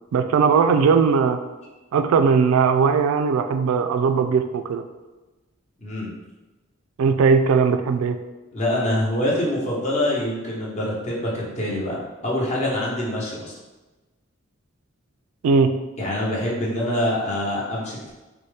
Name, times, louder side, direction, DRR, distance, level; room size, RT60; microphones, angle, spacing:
voice 1, 0.1-1.4 1.9-4.8 7.0-8.2 15.4-15.7, right 5 dB, 85° right, 8 dB, 0.3 m, -19 dB
voice 2, 5.8-6.1 8.5-13.5 16.0-18.1, left 1 dB, 30° left, -4 dB, 0.9 m, -25 dB
4.1 x 2.2 x 3.2 m, 1.1 s
head